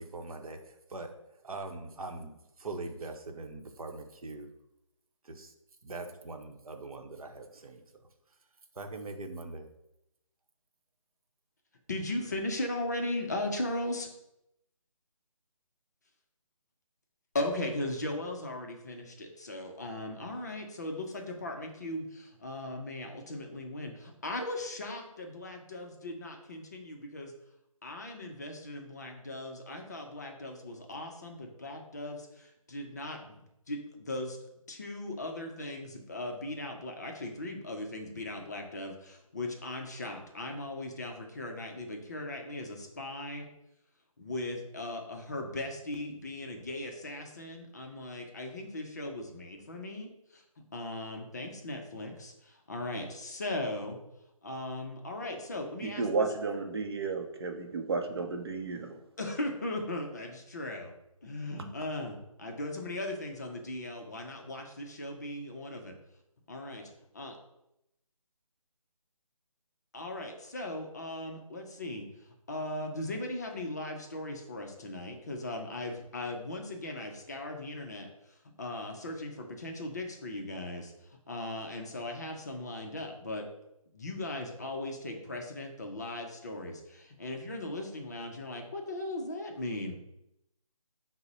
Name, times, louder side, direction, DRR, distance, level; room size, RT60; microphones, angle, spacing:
voice 1, 0.0-4.5 5.2-5.5 5.8-8.4 8.7-9.7, right 3 dB, 85° right, 5 dB, 0.7 m, -42 dB
voice 2, 11.9-14.1 17.3-27.3 27.8-34.4 34.7-43.5 44.2-50.4 50.7-54.0 54.4-56.3 59.2-60.9 61.2-65.9 66.5-66.8 67.1-67.4 69.9-72.1 72.5-78.1 78.6-80.9 81.3-83.5 83.9-90.0, left 1 dB, 30° left, 2 dB, 0.4 m, -38 dB
voice 3, 55.8-59.0, right 4 dB, 45° right, 5 dB, 0.6 m, -32 dB
4.7 x 2.0 x 4.0 m, 0.85 s
figure-of-eight pair, 165°, 18 cm